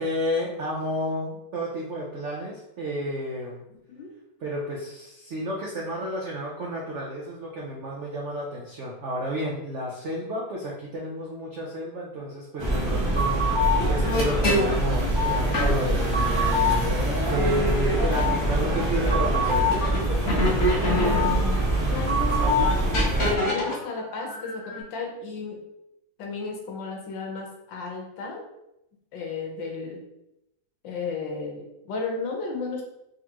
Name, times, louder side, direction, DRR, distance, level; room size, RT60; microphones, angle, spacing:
voice 1, 0.0-3.6 4.4-19.7, equal, 80° right, -3 dB, 0.6 m, -31 dB
sound 1, 12.6-23.4, equal, 25° right, 0.6 m, -24 dB
sound 2, 13.8-14.8 15.5-20.0 20.3-22.0 22.9-23.7 24.2-24.8, left 1 dB, 45° left, 1.3 m, -28 dB
voice 2, 20.8-22.7 23.2-25.6 26.2-28.4 29.1-30.0 30.8-32.8, left 4 dB, 70° left, 1 dB, 1.5 m, -33 dB
3.8 x 3.6 x 2.9 m, 0.87 s
omnidirectional pair, 2.1 m